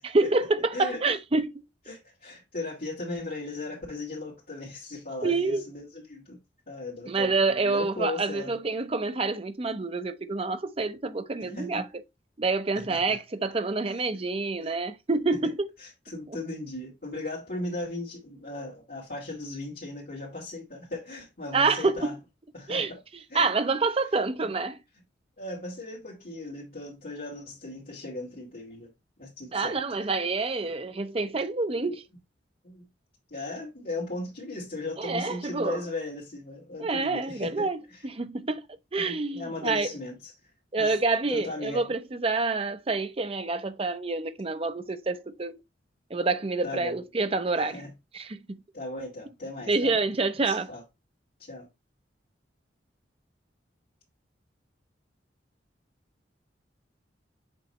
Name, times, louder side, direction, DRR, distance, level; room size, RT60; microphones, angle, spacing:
voice 1, 0.0-1.6 5.2-5.6 7.1-11.9 12.4-15.7 16.3-16.4 21.5-22.1 22.7-22.9 23.3-24.8 29.5-32.0 35.0-35.8 36.8-38.6 38.9-39.9 40.7-45.6 46.1-47.8 48.1-48.6 49.7-50.7, right 3 dB, 30° right, 0.6 m, -27 dB
voice 2, 1.9-6.4 6.7-8.5 11.4-11.8 12.7-13.2 14.6-14.7 15.8-22.1 22.5-23.0 23.3-23.5 25.4-28.9 29.2-29.8 32.6-32.8 33.3-38.1 39.1-40.3 40.7-41.0 41.3-41.8 46.6-47.0 47.7-47.9 48.7-49.9 50.5-50.8 51.4-51.7, left 2 dB, 55° left, 2.5 m, -37 dB
7.6 x 3.1 x 4.2 m
head